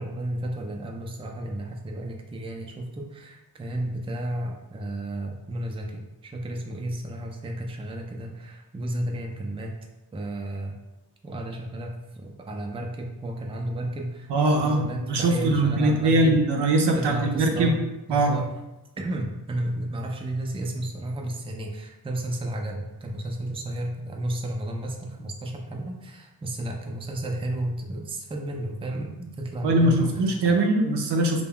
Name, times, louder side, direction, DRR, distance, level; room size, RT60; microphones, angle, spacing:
voice 1, 0.0-9.7 10.1-10.8 11.2-16.4 16.9-17.8 18.1-18.5 19.0-30.5, right 1 dB, 15° right, 1 dB, 0.3 m, -32 dB
voice 2, 14.3-14.8 15.1-17.8 18.1-18.4 29.6-31.4, right 2 dB, 85° right, 2 dB, 0.5 m, -21 dB
2.3 x 2.1 x 3.5 m, 0.99 s
cardioid pair, 60°, 40 cm